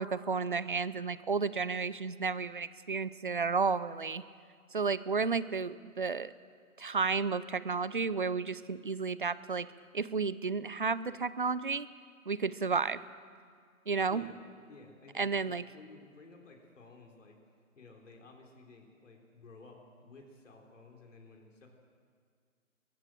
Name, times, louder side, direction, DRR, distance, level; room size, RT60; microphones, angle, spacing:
voice 1, 0.0-4.2 4.7-6.3 6.8-9.7 9.9-11.9 12.3-13.0 13.9-14.2 15.2-15.6, right 5 dB, 40° right, 17 dB, 0.5 m, -32 dB
voice 2, 14.7-17.4 17.7-21.7, left 3 dB, 60° left, 1 dB, 3.7 m, -54 dB
22.5 x 15.5 x 7.5 m, 2.1 s
hypercardioid pair, 160°, 43 cm